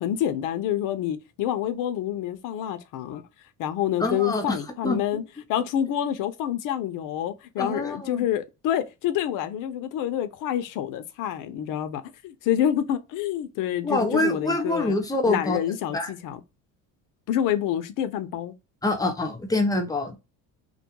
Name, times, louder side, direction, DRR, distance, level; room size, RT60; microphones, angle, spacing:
voice 1, 0.0-3.2 3.6-5.2 5.5-15.0 15.3-16.4 17.3-18.5, left 10 dB, 60° left, 0.5 m, -27 dB
voice 2, 4.0-4.6 4.8-5.0 7.6-8.3 13.8-15.6 15.9-16.1 18.8-20.2, left 2 dB, 10° left, 0.5 m, -25 dB
2.2 x 2.2 x 2.8 m
cardioid pair, 130°, 36 cm